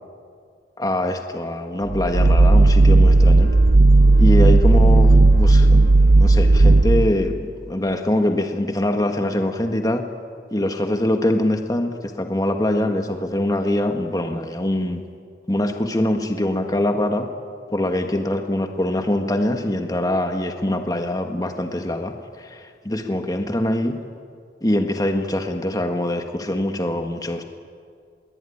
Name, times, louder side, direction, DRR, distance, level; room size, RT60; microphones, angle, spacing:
voice 1, 0.8-3.5 4.2-10.0 10.5-15.0 15.5-17.3 17.7-24.0 24.6-27.5, left 1 dB, 20° left, 5 dB, 1.6 m, -23 dB
sound 1, 1.9-7.3, right 2 dB, 70° right, 0.8 m, -13 dB
26.5 x 21.5 x 9.8 m, 2.1 s
head